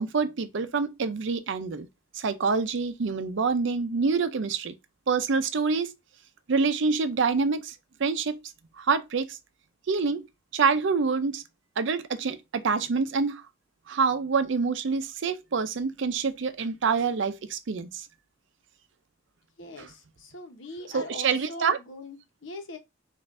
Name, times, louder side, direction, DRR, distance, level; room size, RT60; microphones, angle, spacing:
voice 1, 0.0-1.9 2.1-4.7 5.1-5.9 6.5-7.7 8.0-8.4 8.8-9.3 9.9-10.2 10.5-11.4 11.8-13.4 13.9-18.0 19.8-19.9 20.9-21.8, right 5 dB, 70° right, 0.5 m, -26 dB
voice 2, 19.6-22.8, left 1 dB, 70° left, 1.0 m, -41 dB
5.2 x 2.5 x 2.5 m
head